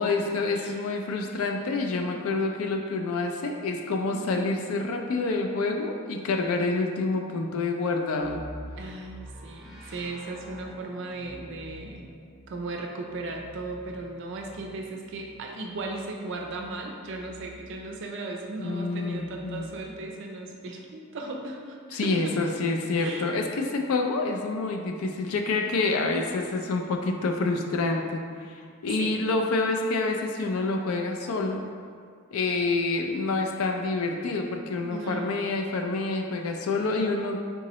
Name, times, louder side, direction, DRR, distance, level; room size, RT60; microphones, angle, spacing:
voice 1, 0.0-8.4 18.6-19.7 21.9-31.6 32.3-37.5, left 3 dB, 80° left, 3 dB, 0.4 m, -27 dB
voice 2, 4.1-4.5 8.8-12.0 12.5-22.4 23.0-23.3 25.7-26.2 29.0-29.2 34.9-35.7, right 2 dB, 55° right, 1 dB, 0.4 m, -37 dB
sound 1, 8.2-18.0 19.0-20.1, equal, ahead, 1.1 m, -48 dB
3.6 x 2.8 x 3.0 m, 2.1 s
head